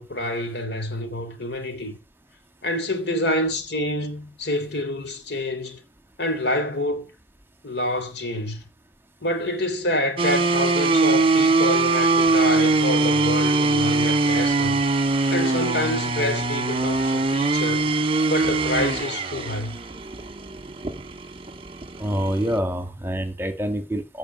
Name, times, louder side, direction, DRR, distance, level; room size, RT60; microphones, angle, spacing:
voice 1, 0.0-2.0 2.6-5.8 6.2-7.1 7.6-8.6 9.2-14.8 15.3-17.9 18.3-19.8, left 1 dB, 60° left, 3.7 m, -27 dB
sound 1, 10.2-22.6, right 3 dB, 30° right, 1.4 m, -22 dB
voice 2, 22.0-24.2, equal, 10° right, 2.2 m, -26 dB
16.0 x 5.9 x 9.4 m
head